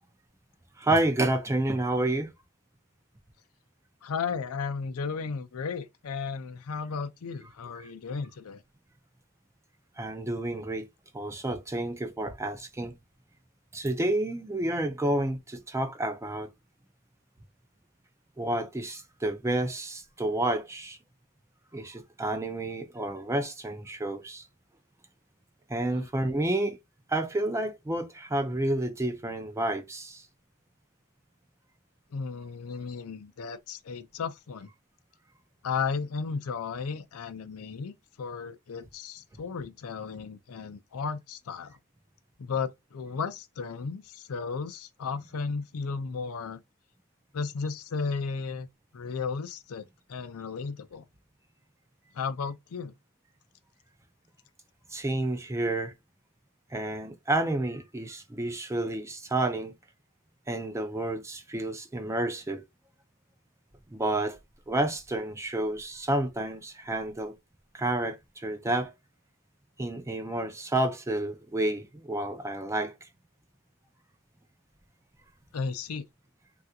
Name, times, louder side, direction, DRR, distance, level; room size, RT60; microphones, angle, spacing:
voice 1, 0.8-2.3 10.0-10.9 11.1-13.0 13.7-16.5 18.4-21.0 21.7-24.4 25.7-26.8 27.1-30.2 54.9-55.9 56.7-59.7 60.5-62.6 63.9-64.4 64.7-67.3 67.7-68.9 69.8-73.1, right 1 dB, 15° right, 0.4 m, -30 dB
voice 2, 4.0-8.6 25.9-26.1 32.1-34.7 35.6-37.9 38.2-41.8 42.4-46.6 47.3-48.7 48.9-51.1 52.1-52.9 75.5-76.0, left 5 dB, 75° left, 0.5 m, -34 dB
3.3 x 2.4 x 2.7 m
head